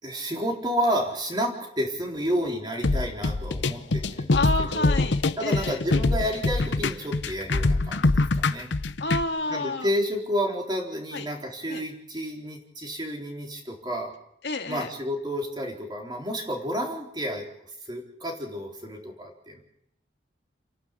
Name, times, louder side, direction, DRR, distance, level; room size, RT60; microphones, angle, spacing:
voice 1, 0.0-4.9 5.4-8.7 9.5-14.1 14.7-17.5 17.8-19.6, equal, 25° right, 0 dB, 4.2 m, -30 dB
sound 1, 2.8-9.2, left 2 dB, 90° left, 0.8 m, -24 dB
voice 2, 4.3-5.8 9.0-9.9 11.1-11.3 11.7-11.8 14.4-14.9, left 2 dB, 75° left, 4 dB, 2.1 m, -29 dB
29.0 x 11.5 x 8.4 m, 0.77 s
head